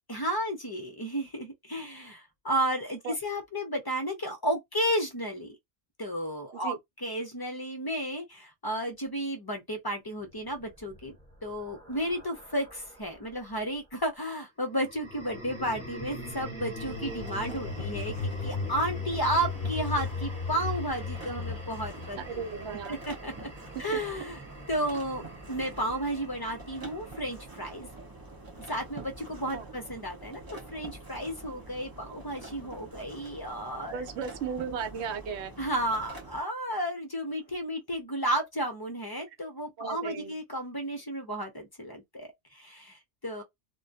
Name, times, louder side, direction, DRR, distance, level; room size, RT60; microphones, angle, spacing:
voice 1, 0.1-5.6 6.0-11.2 11.4-22.6 22.9-23.5 23.8-24.4 24.7-27.9 28.7-34.1 35.6-43.4, right 1 dB, 30° left, 0.4 m, -33 dB
sound 1, 10.7-13.2 14.8-27.1, left 3 dB, 5° left, 1.0 m, -38 dB
sound 2, 16.8-36.4, right 2 dB, 30° right, 0.4 m, -46 dB
voice 2, 22.3-23.0 23.7-23.8 29.5-29.7 33.9-35.5 39.8-40.3, right 6 dB, 75° right, 0.8 m, -35 dB
2.2 x 2.1 x 2.7 m
omnidirectional pair, 1.2 m